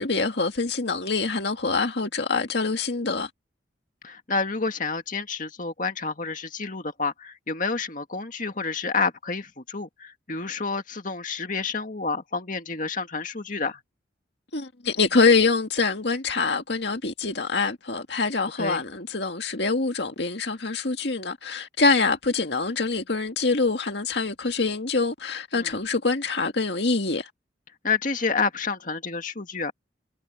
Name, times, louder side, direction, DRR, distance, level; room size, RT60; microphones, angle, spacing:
voice 1, 0.0-3.3 14.5-27.3, left 4 dB, 65° left, 2.1 m, -25 dB
voice 2, 4.0-13.8 18.6-18.8 25.5-25.8 27.8-29.7, left 4 dB, 45° left, 2.1 m, -29 dB
head